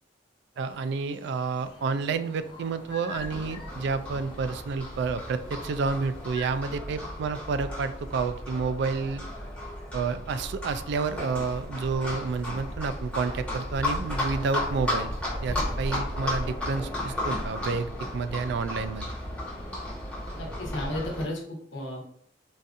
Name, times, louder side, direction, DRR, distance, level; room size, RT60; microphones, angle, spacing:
sound 1, 0.6-6.6, left 2 dB, 25° left, 0.6 m, -47 dB
voice 1, 0.6-9.2 9.9-15.1 15.4-19.1, right 4 dB, 65° right, 11 dB, 0.3 m, -30 dB
Livestock farm animals working animals, 3.1-21.2, left 1 dB, 5° left, 1.1 m, -34 dB
voice 2, 20.3-22.0, left 1 dB, 80° left, -1 dB, 1.0 m, -34 dB
4.0 x 2.5 x 2.4 m, 0.63 s
head